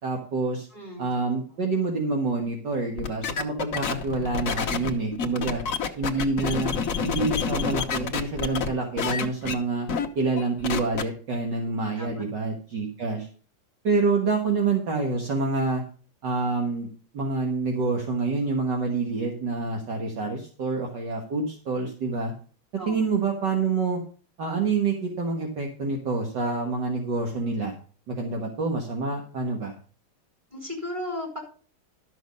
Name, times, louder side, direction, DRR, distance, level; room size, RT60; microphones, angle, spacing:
voice 1, 0.0-0.7 1.0-5.6 6.0-6.8 7.0-9.9 10.2-13.3 13.8-15.8 16.2-16.9 17.1-22.3 22.9-24.0 24.4-27.8 28.1-29.8, right 3 dB, 55° right, 2 dB, 2.1 m, -27 dB
voice 2, 0.7-1.1 11.7-12.2 22.8-23.0 30.5-31.4, left 1 dB, 15° right, 0 dB, 4.9 m, -35 dB
sound 1, 3.0-8.7 9.0-9.5 9.9-10.1 10.4-11.0, left 6 dB, 45° left, 1.3 m, -28 dB
12.5 x 6.4 x 5.3 m, 0.40 s
omnidirectional pair, 2.3 m